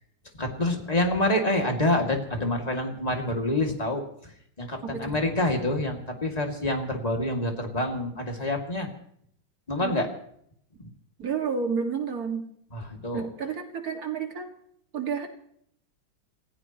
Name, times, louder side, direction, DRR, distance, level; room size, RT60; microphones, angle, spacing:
voice 1, 0.4-8.9 9.7-10.1 12.7-13.3, left 1 dB, 20° left, 2 dB, 2.5 m, -27 dB
voice 2, 4.8-5.1 9.8-10.0 11.2-12.5 13.1-14.5 14.9-15.3, right 6 dB, 45° right, 4 dB, 2.4 m, -30 dB
29.0 x 16.0 x 3.0 m, 0.68 s
omnidirectional pair, 2.2 m